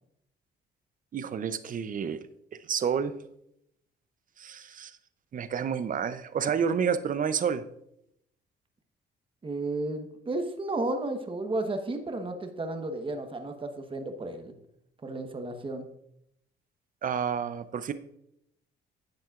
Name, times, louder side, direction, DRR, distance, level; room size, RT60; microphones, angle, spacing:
voice 1, 1.1-2.2 2.7-3.1 4.4-4.9 5.3-7.6 17.0-17.9, right 7 dB, 45° right, 12 dB, 0.6 m, -29 dB
voice 2, 9.4-14.5 15.0-15.8, right 2 dB, 25° right, 5 dB, 1.1 m, -33 dB
10.5 x 7.6 x 2.4 m, 0.77 s
cardioid pair, 90°, 20 cm